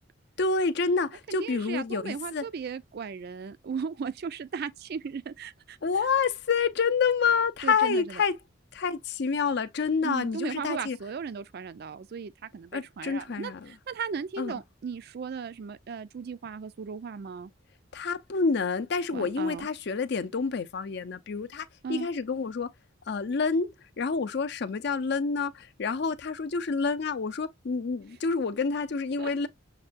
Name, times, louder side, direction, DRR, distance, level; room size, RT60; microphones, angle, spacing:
voice 1, 0.4-2.4 5.8-8.3 8.7-11.0 12.7-13.7 14.4-14.6 17.9-22.7 23.1-29.5, left 5 dB, 60° left, 0.5 m, -28 dB
voice 2, 1.3-5.8 7.6-8.2 10.0-17.5 19.1-19.7 21.8-22.1 29.2-29.3, right 6 dB, 55° right, 0.4 m, -36 dB
6.5 x 2.2 x 2.4 m
head